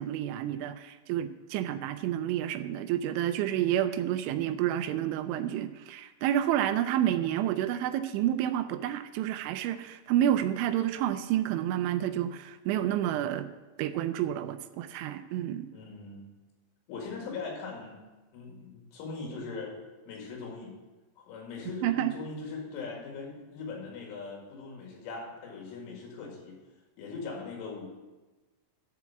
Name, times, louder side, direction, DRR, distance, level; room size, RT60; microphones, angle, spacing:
voice 1, 0.0-13.5 13.8-15.7 21.8-22.1, right 11 dB, 85° right, 10 dB, 2.9 m, -29 dB
voice 2, 15.7-16.3 16.9-17.9 18.3-19.7 20.1-20.7 21.2-26.6 27.0-27.9, left 4 dB, 90° left, -1 dB, 4.8 m, -40 dB
12.0 x 4.7 x 7.0 m, 1.2 s
omnidirectional pair, 5.5 m